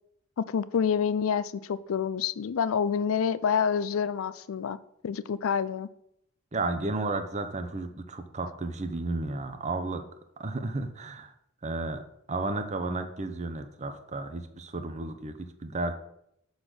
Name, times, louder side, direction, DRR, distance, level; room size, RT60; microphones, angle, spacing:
voice 1, 0.4-4.8 5.0-5.9, left 7 dB, 85° left, 16 dB, 0.4 m, -27 dB
voice 2, 6.5-10.0 10.4-11.3 11.6-12.0 12.3-16.0, right 2 dB, 35° right, 8 dB, 0.7 m, -33 dB
6.7 x 4.0 x 6.2 m, 0.76 s
head